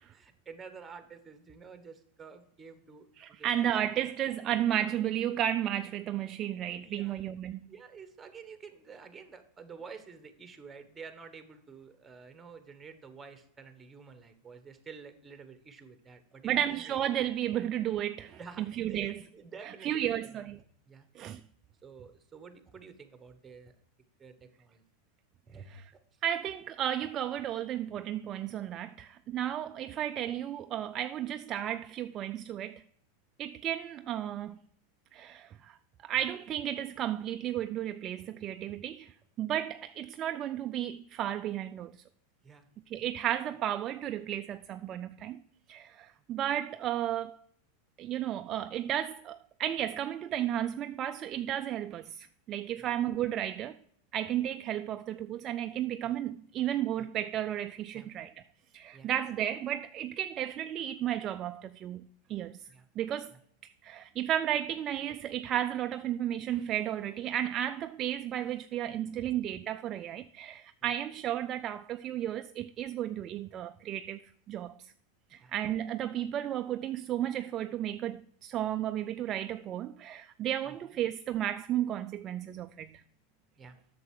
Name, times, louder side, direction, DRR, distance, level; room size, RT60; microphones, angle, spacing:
voice 1, 0.1-3.7 6.8-7.1 7.7-16.8 18.4-20.2 20.9-21.1 21.8-23.7 24.2-24.8 25.5-25.8 38.7-38.8 42.4-42.7 52.8-52.9 56.0-56.1 57.0-57.1 57.9-58.1 58.9-59.1 62.7-62.9 63.3-63.4 69.2-69.3 70.8-70.9 75.4-75.5 80.7-80.8 83.6-83.8, right 5 dB, 15° right, 1.2 m, -50 dB
voice 2, 3.2-7.6 16.4-19.2 19.6-20.6 21.2-21.4 25.7-25.8 26.2-32.8 33.4-34.6 35.1-35.8 36.0-41.9 42.9-45.4 45.7-47.4 48.0-53.8 54.1-58.3 58.7-62.6 63.0-63.3 63.6-74.2 74.5-74.9 75.3-82.9, right 11 dB, 35° right, 0.3 m, -33 dB
7.9 x 6.7 x 4.7 m
hypercardioid pair, 120°, 0 cm